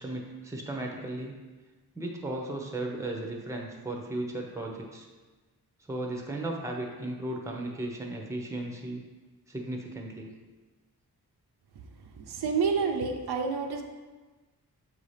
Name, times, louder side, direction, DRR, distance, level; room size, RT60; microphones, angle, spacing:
voice 1, 0.0-1.3 1.9-5.1 5.9-9.0 9.5-10.3, right 1 dB, 10° right, 0 dB, 0.7 m, -35 dB
voice 2, 12.3-13.8, right 5 dB, 75° right, 3 dB, 0.6 m, -28 dB
6.8 x 2.8 x 4.9 m, 1.3 s
wide cardioid pair, 120°, 39 cm